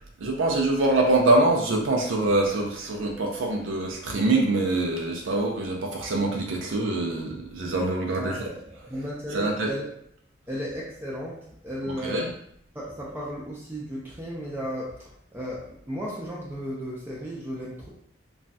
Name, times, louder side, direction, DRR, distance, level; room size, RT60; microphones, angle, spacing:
voice 1, 0.2-8.4 9.3-9.7 12.0-12.3, right 2 dB, 85° right, 0 dB, 0.5 m, -24 dB
voice 2, 8.2-9.8 10.5-12.3 12.7-17.9, equal, 10° right, -5 dB, 0.4 m, -35 dB
3.1 x 2.3 x 2.6 m, 0.69 s
head